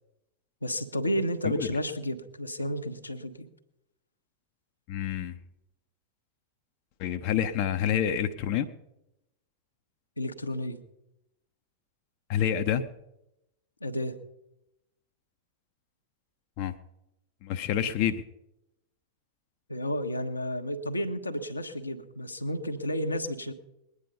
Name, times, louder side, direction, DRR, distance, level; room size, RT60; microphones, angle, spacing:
voice 1, 0.6-3.5 10.2-10.8 13.8-14.2 19.7-23.5, equal, 80° left, 5 dB, 1.1 m, -31 dB
voice 2, 4.9-5.4 7.0-8.7 12.3-12.8 16.6-16.7 17.4-18.2, left 9 dB, 45° left, 8 dB, 0.8 m, -28 dB
21.0 x 9.7 x 5.4 m, 0.89 s
figure-of-eight pair, 90°, 0 cm